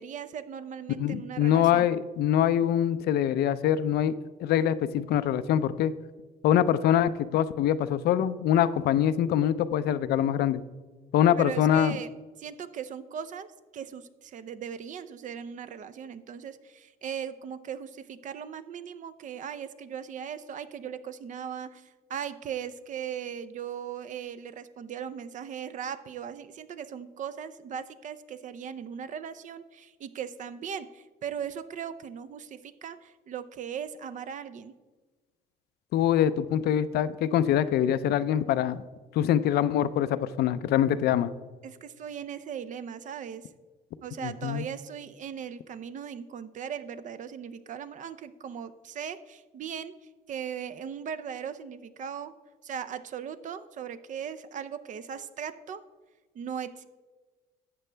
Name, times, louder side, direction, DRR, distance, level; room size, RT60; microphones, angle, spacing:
voice 1, 0.0-1.9 11.4-12.1 12.4-34.7 41.6-43.5 44.0-52.4 52.6-55.9 56.3-56.9, right 8 dB, 50° right, 13 dB, 0.6 m, -38 dB
voice 2, 1.0-4.1 4.4-5.9 6.4-10.6 11.1-12.0 35.9-38.8 39.1-41.3 44.2-44.6, left 10 dB, 70° left, 14 dB, 0.5 m, -24 dB
12.0 x 8.0 x 3.3 m, 1.3 s
cardioid pair, 110°, 17 cm